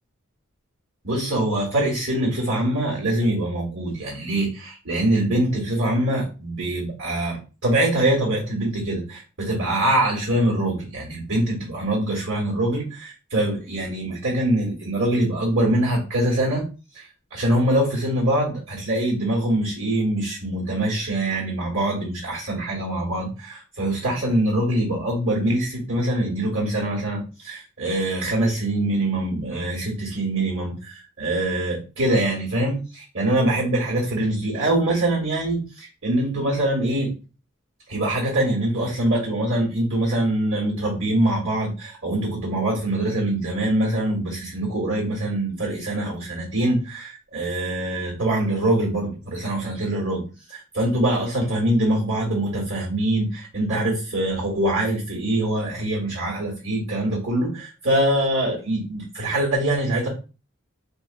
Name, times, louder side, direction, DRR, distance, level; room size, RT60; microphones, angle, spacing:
voice 1, 1.0-16.6 16.9-37.1 37.9-60.1, right 1 dB, 60° right, -4 dB, 1.4 m, -24 dB
3.1 x 2.5 x 2.4 m, 0.33 s
head